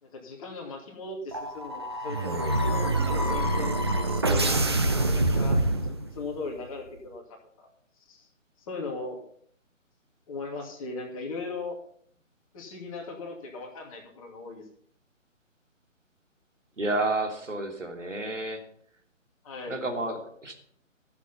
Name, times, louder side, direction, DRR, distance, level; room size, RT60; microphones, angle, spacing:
voice 1, 0.0-2.5 3.0-4.5 5.0-7.2 7.6-7.7 8.1-8.3 8.6-9.2 10.3-11.8 12.5-14.6 19.4-19.8, left 3 dB, 25° left, 0 dB, 2.5 m, -38 dB
sound 1, 1.3-6.3, right 2 dB, 20° right, 0.6 m, -26 dB
voice 2, 16.8-18.6 19.7-20.5, right 2 dB, 65° right, 4 dB, 3.1 m, -30 dB
14.0 x 7.3 x 5.7 m, 0.62 s
figure-of-eight pair, 145°, 39 cm